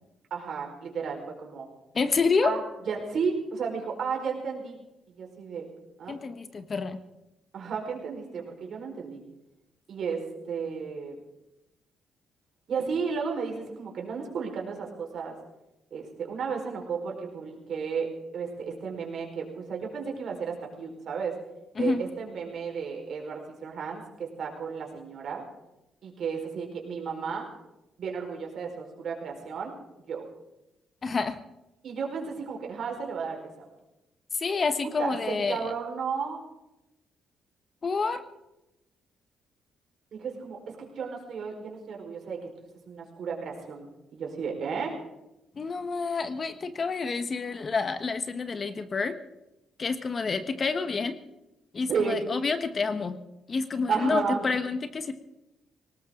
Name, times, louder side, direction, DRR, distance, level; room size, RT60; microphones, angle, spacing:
voice 1, 0.3-1.7 2.4-2.6 2.9-4.8 5.1-5.7 6.0-6.2 7.5-9.2 9.9-11.2 12.7-15.3 15.9-18.1 18.3-21.3 21.8-25.4 26.0-27.4 28.0-29.7 30.1-30.2 31.8-33.6 34.8-36.4 40.1-42.5 42.9-45.0 51.9-52.2 53.9-54.5, right 5 dB, 60° right, 1 dB, 4.8 m, -33 dB
voice 2, 1.9-2.5 6.1-7.0 21.8-22.0 31.0-31.4 34.3-35.7 37.8-38.2 45.6-49.2 49.8-51.2 51.7-53.2 53.5-55.2, left 4 dB, 40° left, 10 dB, 1.3 m, -28 dB
19.0 x 19.0 x 3.9 m, 0.92 s
cardioid pair, 90°, 0 cm